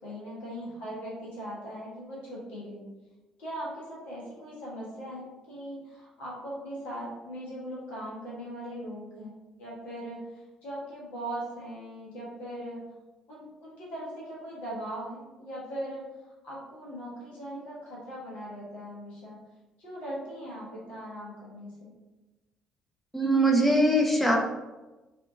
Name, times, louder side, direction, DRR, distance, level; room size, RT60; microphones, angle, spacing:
voice 1, 0.0-2.8 3.4-9.3 9.6-12.8 13.3-16.0 16.4-19.4 19.8-21.9, equal, 60° left, -5 dB, 1.1 m, -39 dB
voice 2, 23.1-24.4, right 1 dB, 5° left, -1 dB, 0.6 m, -22 dB
2.6 x 2.4 x 2.7 m, 1.1 s
figure-of-eight pair, 45°, 3 cm